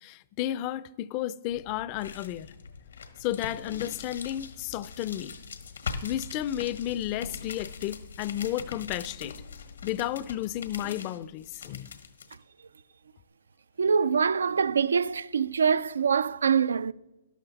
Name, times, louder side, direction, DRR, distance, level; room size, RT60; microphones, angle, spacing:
voice 1, 0.0-2.5 3.2-5.3 6.0-9.4 9.8-12.0, left 13 dB, 30° left, 0.4 m, -32 dB
sound 1, 1.5-12.4, left 5 dB, 85° left, 1.5 m, -42 dB
voice 2, 13.8-16.9, right 6 dB, 85° right, 0.3 m, -24 dB
12.5 x 12.0 x 4.0 m
hypercardioid pair, 145°, 0 cm